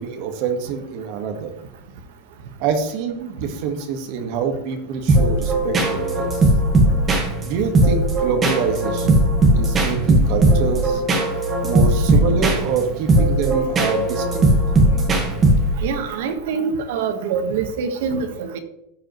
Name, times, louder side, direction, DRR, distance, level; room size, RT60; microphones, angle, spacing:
voice 1, 0.0-1.5 2.6-6.3 7.4-9.3 9.5-11.0 11.6-14.5, right 5 dB, 45° right, 6 dB, 1.5 m, -26 dB
sound 1, 5.1-16.0, right 1 dB, 20° right, 1.4 m, -18 dB
voice 2, 15.8-18.6, right 6 dB, 60° right, 7 dB, 1.3 m, -25 dB
14.5 x 5.1 x 3.1 m, 0.85 s
supercardioid pair, 165°, 0 cm